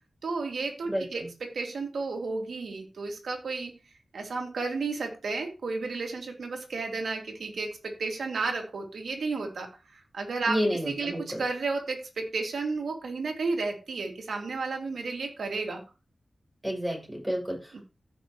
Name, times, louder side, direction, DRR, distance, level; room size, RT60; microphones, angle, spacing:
voice 1, 0.2-3.8 4.1-10.6 10.9-15.8 17.7-17.8, right 3 dB, 90° right, 3 dB, 2.4 m, -32 dB
voice 2, 0.9-1.3 10.5-11.4 16.6-17.8, equal, 5° right, -2 dB, 6.8 m, -30 dB
15.5 x 6.0 x 3.1 m, 0.31 s
wide cardioid pair, 80°, 0 cm